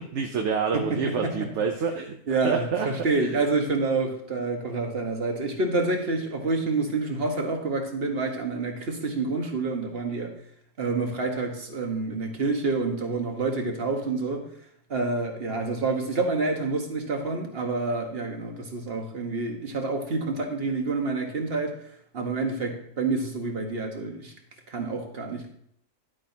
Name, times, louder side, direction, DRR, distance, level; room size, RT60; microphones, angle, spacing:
voice 1, 0.0-2.2 2.4-2.9 3.1-3.3, right 5 dB, 55° right, 4 dB, 1.0 m, -27 dB
voice 2, 0.7-1.5 2.3-10.3 10.8-14.5 14.9-21.8 22.1-24.3 24.7-25.5, right 3 dB, 40° right, 3 dB, 1.6 m, -28 dB
11.0 x 8.4 x 2.8 m, 0.69 s
omnidirectional pair, 1.6 m